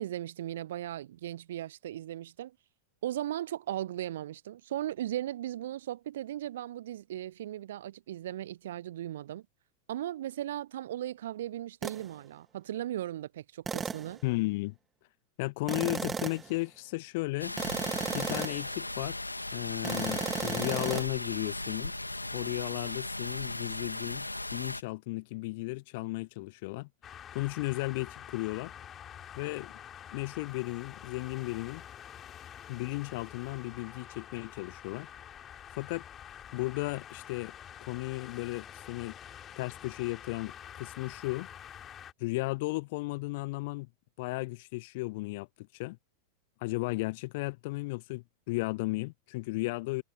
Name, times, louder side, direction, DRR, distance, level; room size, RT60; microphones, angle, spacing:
voice 1, 0.0-2.5 3.0-9.5 9.9-14.2, right 12 dB, 60° right, 0.7 m, -37 dB
sound 1, 11.8-12.0 13.7-14.1 15.7-16.5 17.6-18.7 19.8-21.1, right 5 dB, 15° right, 0.4 m, -34 dB
voice 2, 14.2-14.7 15.4-17.5 18.1-19.2 19.5-21.9 22.3-26.9 27.3-28.7 29.4-29.7 30.1-31.8 32.7-35.1 35.8-36.0 36.5-37.5 37.8-39.1 39.6-41.5 42.2-43.9 44.2-46.0 46.6-50.0, left 23 dB, 50° left, 0.4 m, -35 dB
sound 2, 17.4-24.8, left 2 dB, 85° left, 2.3 m, -37 dB
sound 3, 27.0-42.1, left 9 dB, 25° left, 5.2 m, -48 dB
figure-of-eight pair, 90°, 0 cm